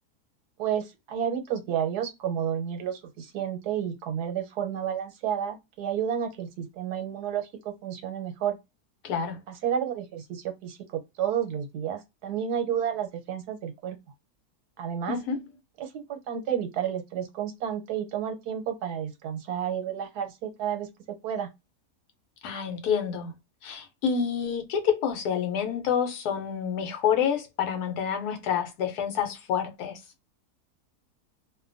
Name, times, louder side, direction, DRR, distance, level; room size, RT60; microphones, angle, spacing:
voice 1, 0.6-8.6 9.5-14.0 14.8-15.2 15.8-20.9 21.2-21.5, right 9 dB, 80° right, 1.3 m, -31 dB
voice 2, 9.0-9.4 15.1-15.4 22.4-23.3 23.6-30.0, left 7 dB, 80° left, 1.2 m, -28 dB
2.7 x 2.2 x 2.5 m
omnidirectional pair, 1.7 m